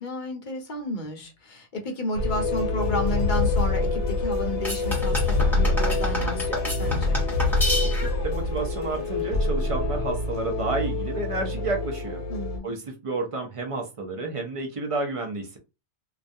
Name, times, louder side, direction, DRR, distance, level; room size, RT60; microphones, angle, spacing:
voice 1, 0.0-7.3 12.3-12.7, left 1 dB, 50° left, 0.7 m, -32 dB
sound 1, 2.1-12.6, left 3 dB, 80° left, 1.0 m, -26 dB
sound 2, 4.6-8.3, left 1 dB, ahead, 1.0 m, -30 dB
voice 2, 8.0-12.3 12.6-15.6, right 3 dB, 50° right, 0.4 m, -30 dB
2.4 x 2.2 x 2.6 m
omnidirectional pair, 1.2 m